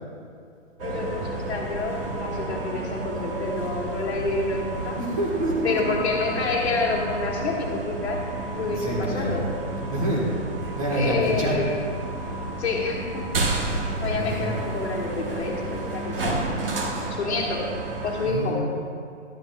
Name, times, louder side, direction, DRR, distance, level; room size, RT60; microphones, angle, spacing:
voice 1, 0.8-5.0 5.6-8.3 8.5-9.5 10.9-11.8 12.6-13.3 14.0-16.5 17.1-17.7 18.0-18.6, left 3 dB, 60° left, -2 dB, 2.0 m, -28 dB
sound 1, 0.8-18.3, right 2 dB, 45° right, 1.3 m, -31 dB
voice 2, 4.9-5.8 8.7-9.4 9.7-10.3 10.8-11.6 14.2-14.5 17.0-17.1 18.2-18.6, right 1 dB, 25° right, -4 dB, 1.4 m, -27 dB
12.5 x 11.0 x 2.4 m, 2.4 s
hypercardioid pair, 170°, 38 cm